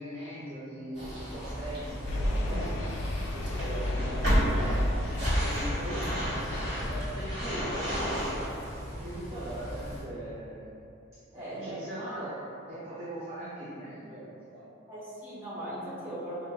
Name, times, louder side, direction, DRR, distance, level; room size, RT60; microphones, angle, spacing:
voice 1, 0.0-2.9 3.3-4.9 5.2-6.4 6.9-8.2 8.9-10.7 11.3-14.6, right 1 dB, 30° right, -11 dB, 0.5 m, -40 dB
sound 1, 1.0-10.0, equal, 50° right, 1.5 m, -31 dB
sound 2, 2.0-7.1, left 1 dB, 65° left, 0.4 m, -34 dB
voice 2, 11.3-12.0 14.9-16.5, right 1 dB, 10° right, -10 dB, 0.9 m, -39 dB
5.0 x 2.5 x 2.8 m, 2.6 s
head